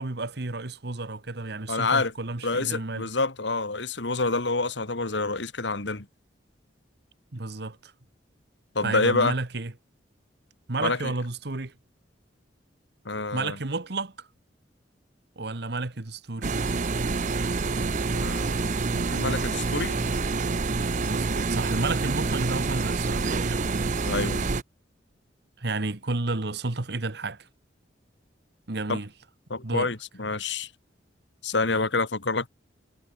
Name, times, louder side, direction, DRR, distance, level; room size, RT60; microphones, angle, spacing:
voice 1, 0.0-3.0 7.3-7.9 8.8-9.7 10.7-11.7 13.3-14.3 15.4-16.6 21.0-23.7 25.6-27.5 28.7-29.1 29.6-29.9, right 3 dB, 60° right, 1.4 m, -31 dB
voice 2, 1.7-2.1 2.4-6.1 8.7-9.4 10.8-11.1 13.1-13.6 18.1-20.1 24.0-24.5 28.9-29.0 29.5-30.7 31.4-32.5, left 3 dB, 75° left, 2.0 m, -27 dB
sound 1, 16.4-24.6, right 3 dB, 45° right, 0.7 m, -27 dB
head